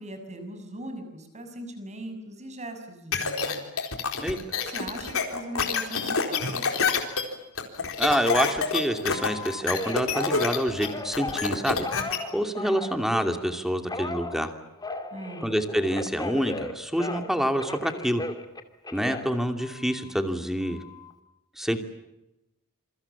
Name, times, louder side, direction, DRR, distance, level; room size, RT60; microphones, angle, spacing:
voice 1, 0.0-3.7 4.5-6.9 15.1-15.5, right 1 dB, 30° right, 7 dB, 6.8 m, -40 dB
sound 1, 3.1-12.2, left 5 dB, 65° left, 4.0 m, -27 dB
voice 2, 8.0-14.5 15.4-18.2 18.9-20.8 21.6-21.8, equal, ahead, 7 dB, 2.7 m, -27 dB
Telephone, 9.1-13.4 13.9-17.3 17.6-20.1 20.6-21.1, left 2 dB, 20° left, 2.4 m, -37 dB
27.5 x 24.0 x 7.3 m, 0.93 s
head